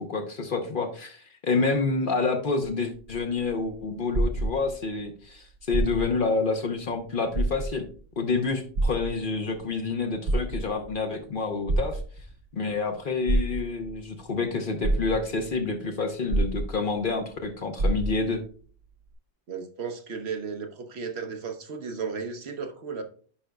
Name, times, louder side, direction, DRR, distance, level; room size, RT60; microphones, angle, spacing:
voice 1, 0.0-7.8 8.2-12.0 12.5-18.4, left 4 dB, 50° left, 5 dB, 0.9 m, -28 dB
sound 1, 2.9-5.0 5.6-6.3 6.7-6.8 7.3-8.0 8.8-9.6 10.1-10.9 11.7-12.4 13.3-14.0 14.5-14.6 14.8-15.5 16.3-17.1 17.4-17.5 17.8-18.4 19.1-19.2, right 2 dB, 90° right, 1.4 m, -27 dB
voice 2, 19.5-23.0, right 5 dB, 65° right, 6 dB, 1.0 m, -34 dB
10.0 x 5.0 x 2.2 m, 0.43 s
omnidirectional pair, 1.2 m